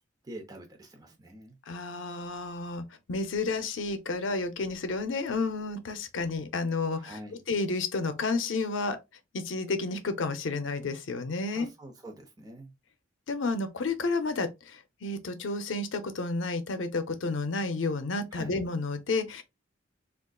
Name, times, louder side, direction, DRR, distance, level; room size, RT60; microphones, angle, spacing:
voice 1, 0.2-1.6 6.9-7.4 11.5-12.7 18.3-18.6, right 1 dB, 20° right, 0.5 m, -45 dB
voice 2, 1.7-9.0 9.3-11.7 13.3-19.4, left 3 dB, 90° left, 0.5 m, -31 dB
3.6 x 2.4 x 2.2 m
head